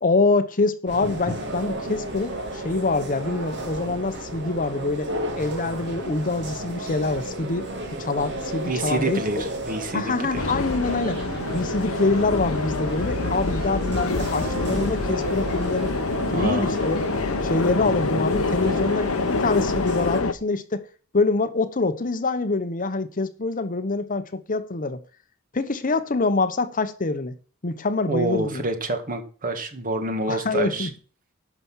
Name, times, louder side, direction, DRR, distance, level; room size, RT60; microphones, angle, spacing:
voice 1, 0.0-5.1 5.3-7.7 8.0-9.4 9.9-11.2 11.5-16.0 16.3-17.1 17.4-20.9 21.1-25.0 25.5-27.3 27.6-28.6 30.3-30.9, left 3 dB, 40° left, 0.9 m, -25 dB
sound 1, 0.9-20.2, right 1 dB, 55° right, 3.0 m, -33 dB
voice 2, 8.6-10.4 16.3-16.9 28.1-30.9, right 2 dB, 40° right, 1.9 m, -27 dB
sound 2, 10.3-20.3, left 3 dB, 80° left, 1.0 m, -27 dB
11.5 x 6.0 x 5.6 m
head